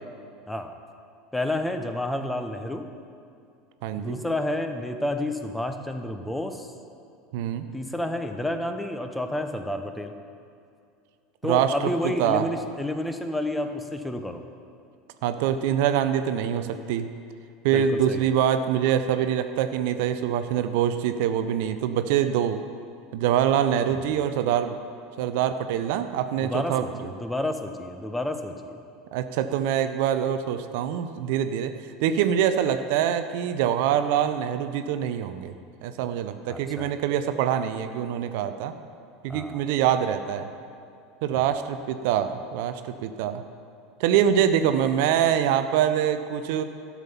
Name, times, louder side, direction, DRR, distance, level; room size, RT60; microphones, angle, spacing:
voice 1, 1.3-2.9 4.0-6.7 7.7-10.1 11.4-14.4 17.7-18.3 23.9-24.2 26.4-28.8 36.5-36.9 39.3-39.6 41.3-41.4, left 1 dB, 5° left, 7 dB, 0.9 m, -30 dB
voice 2, 3.8-4.2 7.3-7.6 11.4-12.5 15.2-17.1 17.6-22.6 23.1-24.8 25.2-26.9 29.1-31.7 32.0-35.5 35.8-38.7 39.2-40.5 41.2-43.4 44.0-46.6, right 9 dB, 60° right, 9 dB, 0.5 m, -24 dB
12.5 x 7.2 x 5.6 m, 2.5 s
figure-of-eight pair, 75°, 0 cm